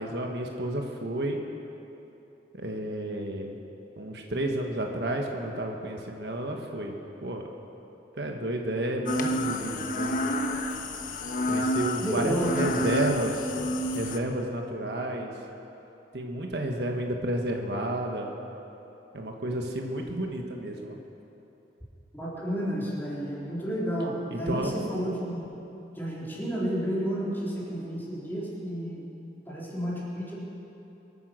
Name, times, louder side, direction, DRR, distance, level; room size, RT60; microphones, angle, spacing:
voice 1, 0.0-1.4 2.5-3.6 4.0-6.9 7.2-7.4 8.2-10.1 11.5-13.4 13.9-15.3 16.1-18.3 19.1-21.0 24.3-24.7, right 1 dB, 70° right, 2 dB, 1.5 m, -31 dB
sound 1, 9.1-14.2, left 1 dB, 50° left, 1.0 m, -29 dB
voice 2, 12.0-12.8 22.1-25.4 26.0-29.0 29.5-30.4, equal, 10° left, -6 dB, 3.8 m, -31 dB
23.0 x 9.4 x 6.5 m, 3.0 s
head